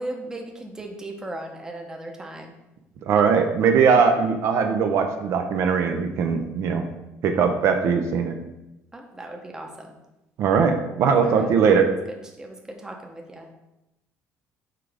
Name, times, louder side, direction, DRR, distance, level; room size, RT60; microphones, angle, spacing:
voice 1, 0.0-2.5 8.9-9.9 11.2-11.7 12.1-13.5, right 1 dB, 10° right, 2 dB, 0.8 m, -37 dB
voice 2, 3.1-6.8 7.2-8.4 10.4-11.9, right 6 dB, 60° right, 5 dB, 0.6 m, -20 dB
5.8 x 4.9 x 3.4 m, 0.92 s
cardioid pair, 140°, 5 cm